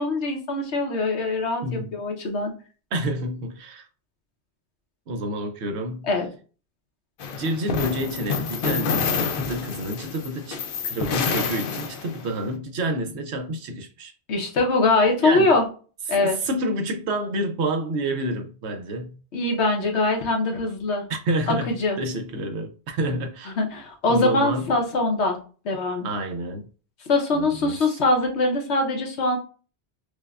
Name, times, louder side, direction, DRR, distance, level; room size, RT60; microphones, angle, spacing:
voice 1, 0.0-2.5 6.0-6.3 14.3-15.6 16.1-16.4 19.3-21.0 21.5-22.0 23.5-25.4 25.6-26.1 27.1-29.4, left 2 dB, 85° left, 1.2 m, -23 dB
voice 2, 1.6-1.9 2.9-3.9 5.1-6.1 7.4-14.1 15.2-15.5 16.2-19.2 21.1-23.6 24.1-24.7 26.0-26.7 27.3-27.7, right 1 dB, 80° right, 1.0 m, -29 dB
sound 1, 7.2-12.4, left 5 dB, 60° left, 0.7 m, -28 dB
4.9 x 2.2 x 2.4 m
omnidirectional pair, 1.1 m